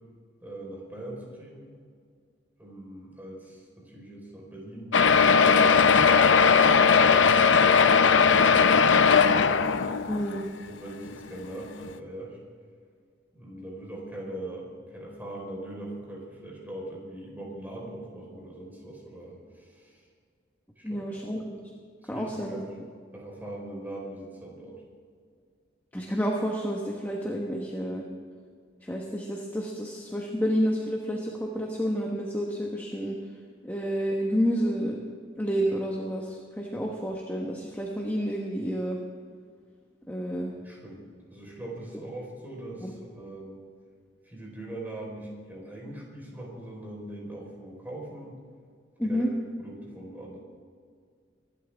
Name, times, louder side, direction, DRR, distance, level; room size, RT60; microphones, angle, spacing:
voice 1, 0.4-1.7 2.6-5.8 6.6-7.7 8.0-9.5 10.1-10.3 10.6-12.4 13.3-20.0 20.8-21.4 22.0-22.7 23.1-24.8 40.6-41.0 41.3-43.6 44.2-48.4 49.0-50.4, right 1 dB, 10° right, -3 dB, 4.4 m, -41 dB
sound 1, 4.9-10.4 11.0-11.1 11.4-11.5 11.8-11.9, left 6 dB, 80° left, 0.6 m, -19 dB
voice 2, 10.1-10.4 20.8-21.6 22.1-22.6 25.9-28.0 28.8-33.2 33.6-35.0 35.4-39.0 40.1-40.5 42.8-42.9 49.0-49.3, equal, 10° left, -1 dB, 1.3 m, -29 dB
24.0 x 12.5 x 3.6 m, 2.1 s
head